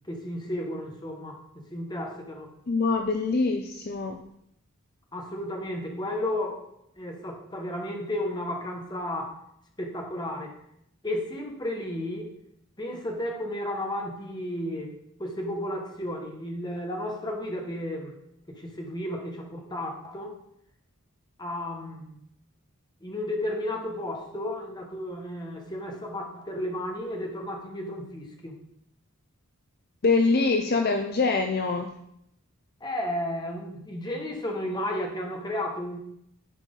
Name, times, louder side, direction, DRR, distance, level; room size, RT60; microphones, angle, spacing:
voice 1, 0.1-1.4 1.7-2.5 5.1-6.7 7.0-9.4 9.8-10.5 11.0-12.3 12.8-14.9 15.2-18.2 18.5-20.3 21.4-22.2 23.0-28.5 32.8-36.0, left 1 dB, 20° left, 2 dB, 1.3 m, -33 dB
voice 2, 2.7-4.2 30.0-31.9, left 3 dB, 45° left, 5 dB, 0.5 m, -24 dB
11.0 x 4.6 x 5.4 m, 0.76 s
head